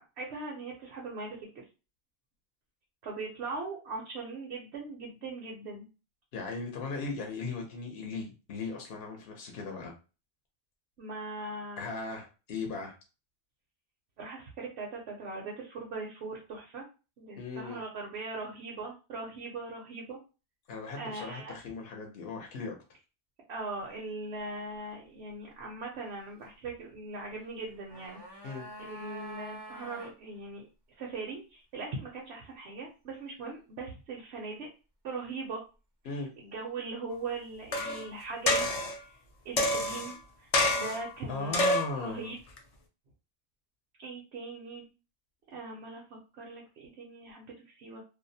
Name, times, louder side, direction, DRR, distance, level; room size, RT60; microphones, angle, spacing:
voice 1, 0.0-1.6 3.0-5.9 11.0-11.8 14.2-16.8 17.2-20.2 20.9-21.6 23.5-28.5 28.8-30.7 31.0-34.7 35.0-35.6 36.4-39.2 39.4-42.4 44.0-44.9 45.5-48.0, right 3 dB, 85° right, -2 dB, 0.9 m, -40 dB
voice 2, 6.3-9.9 11.8-12.9 17.4-17.8 20.7-22.8 28.4-28.7 36.0-36.3 41.3-42.3, left 4 dB, 65° left, 1 dB, 0.8 m, -38 dB
sound 1, 27.6-30.2 30.4-30.5, right 1 dB, 40° right, 0.3 m, -46 dB
sound 2, 37.7-38.1 38.5-39.0 39.6-40.1 40.5-41.1 41.5-42.0 42.6-42.7, left 2 dB, 50° left, 0.5 m, -27 dB
2.5 x 2.0 x 2.6 m, 0.32 s
omnidirectional pair, 1.1 m